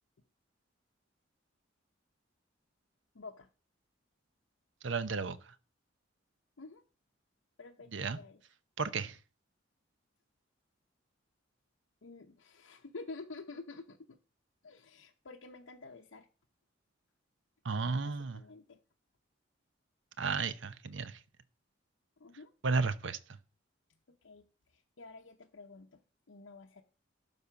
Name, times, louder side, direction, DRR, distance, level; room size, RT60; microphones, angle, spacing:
voice 1, 3.1-3.5 6.6-6.8 7.6-8.4 12.0-14.2 14.6-16.3 17.9-18.8 22.2-22.5 24.1-24.4 24.7-26.0 26.3-26.8, left 3 dB, 85° left, 0.8 m, -49 dB
voice 2, 4.8-5.5 7.9-8.2 8.8-9.2 17.6-18.4 20.2-21.2 22.6-23.4, right 4 dB, 70° right, 0.7 m, -33 dB
12.0 x 4.1 x 5.9 m
head